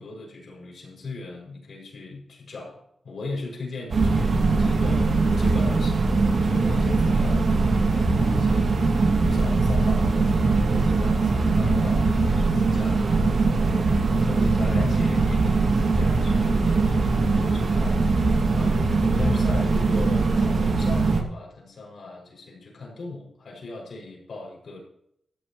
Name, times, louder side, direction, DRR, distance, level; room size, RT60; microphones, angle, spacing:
voice 1, 0.0-24.8, left 3 dB, 60° left, -1 dB, 6.3 m, -38 dB
sound 1, 3.9-21.2, right 3 dB, 55° right, 2.3 m, -21 dB
16.0 x 13.0 x 3.1 m, 0.73 s
wide cardioid pair, 140°, 0 cm